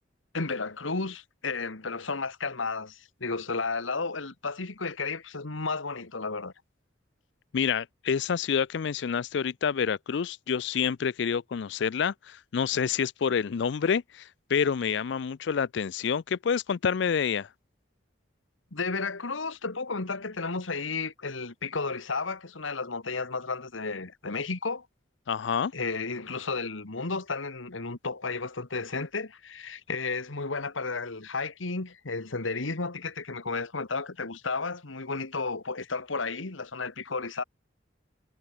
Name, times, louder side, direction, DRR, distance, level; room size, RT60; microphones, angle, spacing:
voice 1, 0.3-6.5 18.7-24.9 25.7-37.4, left 4 dB, 90° left, 1.8 m, -33 dB
voice 2, 7.5-17.5 25.3-25.7, left 6 dB, 65° left, 0.4 m, -28 dB
head